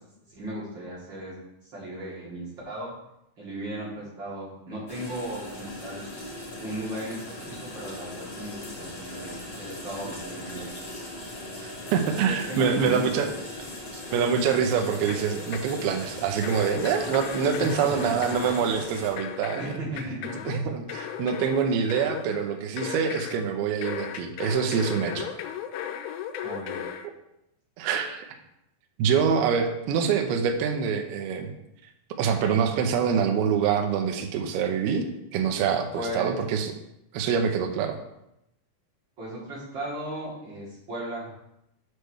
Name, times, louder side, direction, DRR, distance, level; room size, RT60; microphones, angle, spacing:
voice 1, 0.3-2.9 3.4-6.1 6.6-10.7 12.2-13.2 17.6-18.5 19.5-20.4 26.4-26.8 35.9-36.3 39.2-41.3, right 1 dB, 55° right, -8 dB, 1.3 m, -36 dB
sound 1, 4.9-19.1, left 1 dB, 60° left, 1.1 m, -39 dB
voice 2, 11.6-13.3 13.9-19.7 20.5-25.3 27.8-28.3 29.0-31.5 32.2-35.0 35.3-36.7 37.1-38.0, right 7 dB, 75° right, 4 dB, 2.3 m, -25 dB
sound 2, 14.1-14.8 15.1-15.8 16.4-23.5 23.8-27.1, left 9 dB, 85° left, 3.0 m, -37 dB
7.9 x 3.3 x 6.3 m, 0.83 s
omnidirectional pair, 5.3 m